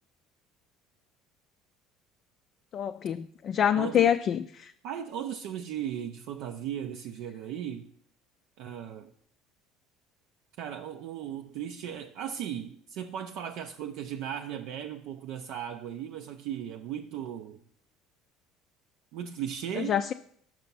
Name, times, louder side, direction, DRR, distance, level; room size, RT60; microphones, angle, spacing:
voice 1, 2.7-4.7 19.8-20.1, left 9 dB, 50° left, 0.3 m, -26 dB
voice 2, 3.7-4.1 4.8-7.9 8.6-9.1 10.6-17.6 19.1-20.0, right 9 dB, 70° right, 0.4 m, -37 dB
6.0 x 5.5 x 5.4 m
supercardioid pair, 80°, 0 cm